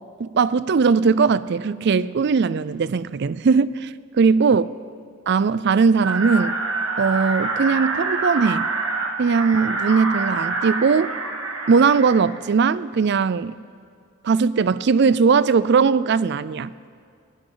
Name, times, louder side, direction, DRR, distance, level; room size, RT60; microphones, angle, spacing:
voice 1, 0.2-4.7 5.3-6.6 7.0-8.7 9.2-11.1 11.7-13.5 14.2-16.7, right 5 dB, 50° right, 17 dB, 0.4 m, -19 dB
sound 1, 6.0-12.2, right 3 dB, 70° right, 1.8 m, -26 dB
21.5 x 16.5 x 3.9 m, 2.3 s
head